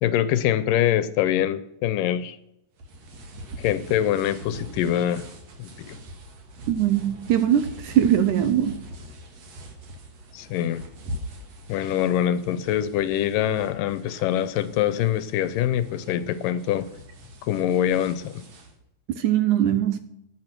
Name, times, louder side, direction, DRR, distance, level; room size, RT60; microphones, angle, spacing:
voice 1, 0.0-2.4 3.6-5.2 5.6-6.0 10.3-10.8 11.7-16.9 17.4-18.4, left 11 dB, 75° left, 2.2 m, -24 dB
sound 1, 2.8-18.8, equal, 50° right, 2.9 m, -42 dB
voice 2, 6.7-8.9 19.1-20.0, right 10 dB, 75° right, 2.0 m, -21 dB
16.5 x 10.0 x 6.0 m
omnidirectional pair, 4.1 m